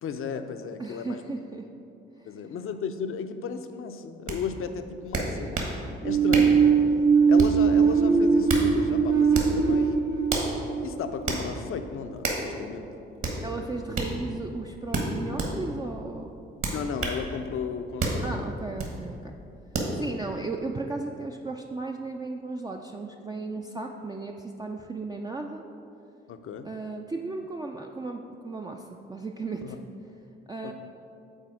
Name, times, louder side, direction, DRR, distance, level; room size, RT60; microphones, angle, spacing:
voice 1, 0.0-1.2 2.3-5.5 6.0-6.5 7.3-10.0 10.8-12.9 16.7-18.3 26.3-26.7 29.6-29.8 30.6-30.7, left 6 dB, 45° left, 8 dB, 0.5 m, -34 dB
voice 2, 0.8-1.7 2.2-2.4 13.4-16.3 18.2-19.3 19.9-25.6 26.6-29.8 30.5-30.7, right 3 dB, 15° right, 2 dB, 0.4 m, -35 dB
sound 1, 4.3-4.4 5.1-5.8 6.3-6.6 7.4-7.7 8.3-8.7 9.3-9.6 10.3-10.5 11.3-11.5 12.2-12.5 13.2-13.4 13.9-14.1 14.9-15.5 16.6-17.2 18.0-18.2 18.8-19.0 19.7-19.9, right 3 dB, 50° right, 1.3 m, -29 dB
sound 2, 6.0-11.7, right 5 dB, 70° right, 1.0 m, -21 dB
6.3 x 4.1 x 5.0 m, 2.7 s
hypercardioid pair, 40°, 29 cm